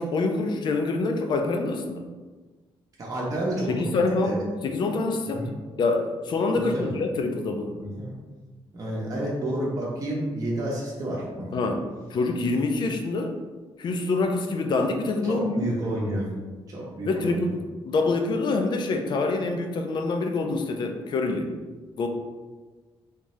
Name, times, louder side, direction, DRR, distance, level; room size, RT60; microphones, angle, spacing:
voice 1, 0.0-2.1 3.7-5.4 5.8-7.8 11.5-11.8 12.1-13.3 13.8-15.7 17.0-17.6 17.9-21.5 22.0-22.1, left 3 dB, 50° left, 4 dB, 0.4 m, -26 dB
voice 2, 3.0-3.7 4.2-4.4 5.3-5.5 6.6-6.9 7.8-8.1 8.7-11.5 15.2-16.3 16.7-17.5, right 1 dB, 35° right, -5 dB, 0.8 m, -30 dB
3.6 x 2.7 x 3.1 m, 1.3 s
cardioid pair, 155°, 10 cm